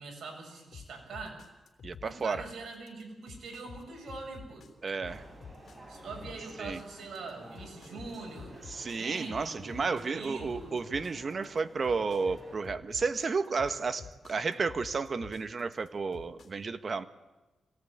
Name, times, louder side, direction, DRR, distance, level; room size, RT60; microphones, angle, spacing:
voice 1, 0.0-1.4 2.0-4.6 5.9-8.6 8.9-10.8, right 3 dB, 70° right, 1 dB, 7.8 m, -43 dB
sound 1, 0.7-16.5, left 6 dB, 60° left, 3.3 m, -49 dB
voice 2, 1.8-2.4 4.8-5.2 6.6-6.8 8.7-17.1, right 4 dB, 45° right, 11 dB, 1.3 m, -32 dB
sound 2, 5.0-12.6, right 1 dB, 30° right, 7.3 m, -52 dB
25.5 x 18.5 x 8.9 m, 1.1 s
cardioid pair, 95°, 0 cm